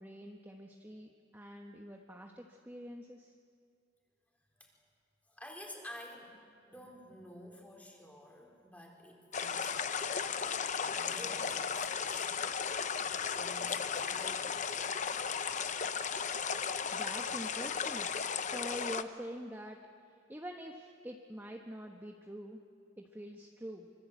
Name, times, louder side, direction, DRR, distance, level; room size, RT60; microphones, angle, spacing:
voice 1, 0.0-3.3 16.9-18.1 18.4-19.8 20.3-22.6 23.0-23.9, equal, 10° right, 1 dB, 1.3 m, -45 dB
voice 2, 5.3-6.3 6.7-10.7 10.9-12.3 13.0-14.7, left 1 dB, 10° left, 0 dB, 4.1 m, -51 dB
sound 1, 9.3-19.0, left 6 dB, 40° left, 0.8 m, -35 dB
25.5 x 24.5 x 8.2 m, 2.2 s
head